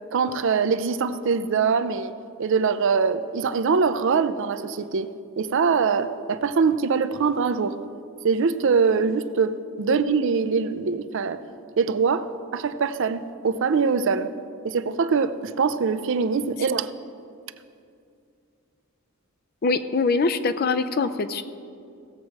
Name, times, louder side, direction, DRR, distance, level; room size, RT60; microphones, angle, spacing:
voice 1, 0.1-2.1 2.4-5.1 5.4-7.8 8.2-11.4 11.8-14.3 14.6-16.9, right 5 dB, 60° right, 12 dB, 0.5 m, -23 dB
voice 2, 19.6-21.4, left 4 dB, 45° left, 12 dB, 0.5 m, -23 dB
16.5 x 7.5 x 4.7 m, 2.4 s
head